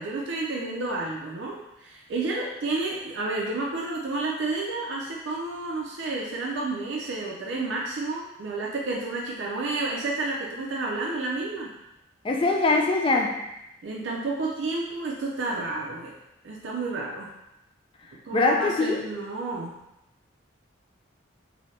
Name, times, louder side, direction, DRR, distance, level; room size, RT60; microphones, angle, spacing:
voice 1, 0.0-11.8 13.8-16.2 16.4-17.3 18.3-19.8, right 3 dB, 65° right, -3 dB, 0.4 m, -30 dB
voice 2, 12.2-13.5 18.3-19.0, left 3 dB, 25° left, 2 dB, 0.3 m, -22 dB
3.2 x 2.7 x 2.6 m, 0.89 s
head